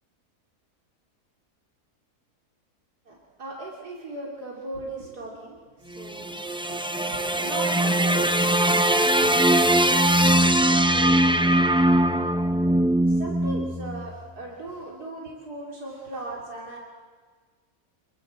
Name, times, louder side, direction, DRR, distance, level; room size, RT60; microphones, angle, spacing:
voice 1, 3.1-11.8 12.2-16.8, right 2 dB, 80° right, -2 dB, 3.6 m, -39 dB
sound 1, 5.9-14.2, right 1 dB, 5° right, 0.4 m, -21 dB
27.0 x 22.0 x 7.5 m, 1.5 s
omnidirectional pair, 1.7 m